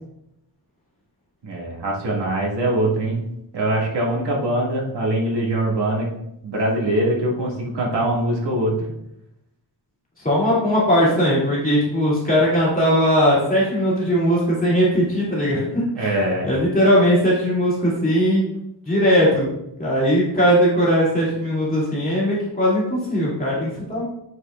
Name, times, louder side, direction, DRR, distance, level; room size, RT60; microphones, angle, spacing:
voice 1, 1.4-3.2 3.5-6.1 6.4-8.9 16.0-16.5, right 1 dB, 65° right, -4 dB, 2.3 m, -22 dB
voice 2, 10.2-16.2 16.4-18.4 18.9-19.5 19.8-24.0, equal, 20° left, -7 dB, 2.7 m, -19 dB
8.7 x 6.7 x 2.5 m, 0.82 s
wide cardioid pair, 165°, 44 cm